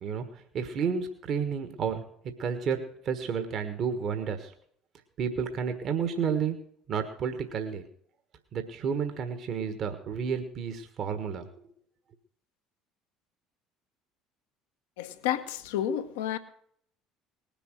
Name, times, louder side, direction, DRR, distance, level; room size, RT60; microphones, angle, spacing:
voice 1, 0.0-2.0 2.4-4.5 5.2-6.6 6.9-7.8 8.5-11.5, right 6 dB, 55° right, 8 dB, 1.4 m, -31 dB
voice 2, 15.0-16.4, left 10 dB, 75° left, 9 dB, 1.0 m, -30 dB
19.5 x 6.9 x 6.5 m, 0.64 s
hypercardioid pair, 60°, 0 cm